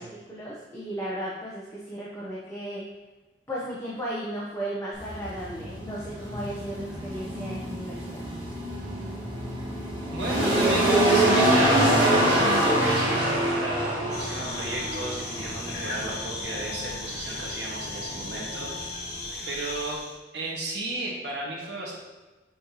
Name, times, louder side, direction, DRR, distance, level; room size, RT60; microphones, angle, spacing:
voice 1, 0.0-2.8 3.5-8.3, right 1 dB, 15° left, -6 dB, 0.9 m, -35 dB
sound 1, 4.9-19.4, right 1 dB, 30° right, 1.7 m, -26 dB
voice 2, 10.1-18.7 19.5-20.0 20.3-22.0, right 2 dB, 70° right, -3 dB, 1.5 m, -34 dB
sound 2, 10.5-18.9, left 1 dB, 10° right, 1.7 m, -39 dB
sound 3, 14.1-20.2, left 2 dB, 65° left, 1.3 m, -37 dB
7.5 x 4.4 x 3.0 m, 1.2 s
head